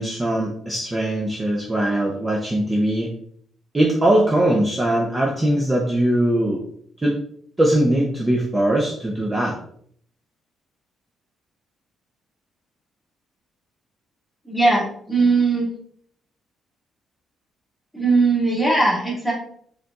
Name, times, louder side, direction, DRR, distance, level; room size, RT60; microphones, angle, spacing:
voice 1, 0.0-3.1 3.7-6.6 7.0-7.2 7.6-9.5, right 1 dB, 20° right, -2 dB, 0.8 m, -21 dB
voice 2, 14.4-15.7 17.9-19.3, right 3 dB, 5° left, -4 dB, 1.8 m, -19 dB
4.3 x 3.9 x 2.4 m, 0.62 s
cardioid pair, 90°, 0 cm